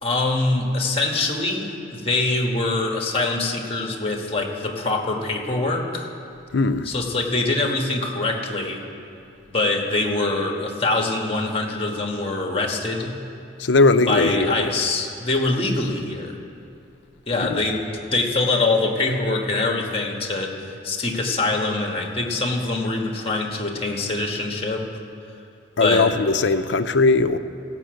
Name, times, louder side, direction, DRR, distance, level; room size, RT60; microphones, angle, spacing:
voice 1, 0.0-6.1 6.8-8.8 9.5-13.2 14.1-16.4 17.3-24.9 25.8-26.1, left 2 dB, 30° left, 1 dB, 1.5 m, -24 dB
voice 2, 6.5-6.9 13.6-14.7 17.5-17.6 25.8-27.4, left 3 dB, 75° left, 10 dB, 0.6 m, -19 dB
16.5 x 6.1 x 7.7 m, 2.6 s
head